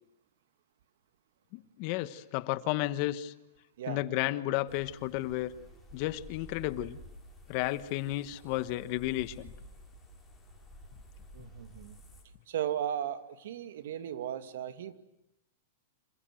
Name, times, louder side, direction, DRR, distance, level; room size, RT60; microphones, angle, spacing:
voice 1, 1.5-3.3 3.9-5.5 5.9-7.0 7.5-9.5, left 16 dB, 40° left, 14 dB, 1.2 m, -32 dB
sound 1, 4.7-12.2, equal, 5° left, 6.0 m, -52 dB
voice 2, 11.3-12.0 12.5-14.9, right 10 dB, 65° right, 11 dB, 2.4 m, -36 dB
27.0 x 27.0 x 7.8 m, 0.85 s
supercardioid pair, 165°, 0 cm